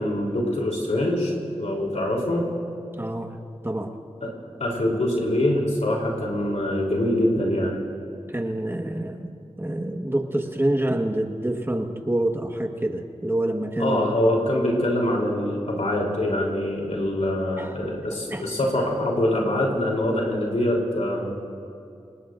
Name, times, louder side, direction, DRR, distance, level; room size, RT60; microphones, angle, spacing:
voice 1, 0.0-2.5 4.2-4.3 4.6-7.8 13.8-21.3, left 1 dB, 80° left, -2 dB, 3.5 m, -24 dB
voice 2, 3.0-3.3 3.6-3.9 8.3-9.3 9.6-14.0 17.6-17.7 18.3-18.5, right 1 dB, 20° right, 3 dB, 1.5 m, -26 dB
28.0 x 18.5 x 2.6 m, 2.4 s
wide cardioid pair, 50°, 12 cm